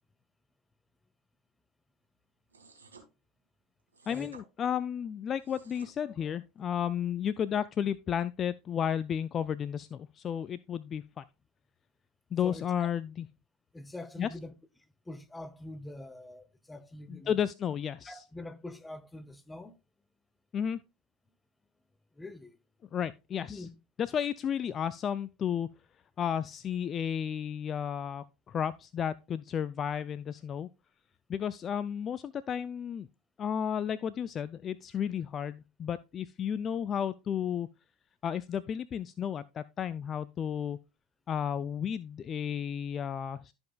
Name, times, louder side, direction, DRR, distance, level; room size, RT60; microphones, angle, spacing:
sound 1, 2.5-3.1 3.9-4.4 5.3-5.9, right 4 dB, 85° right, 2.3 m, -54 dB
voice 1, 4.1-11.2 12.3-13.2 14.2-14.3 17.1-18.2 20.5-20.8 22.9-23.6 24.0-25.7 26.2-30.7 31.3-33.1 33.4-37.7 38.2-40.8 41.3-43.5, left 8 dB, 35° left, 0.3 m, -33 dB
voice 2, 12.4-12.9 13.7-14.5 15.1-17.4 18.0-19.8 22.2-22.6 23.5-23.7, left 2 dB, 10° left, 0.9 m, -44 dB
14.0 x 5.3 x 2.3 m
figure-of-eight pair, 80°, 0 cm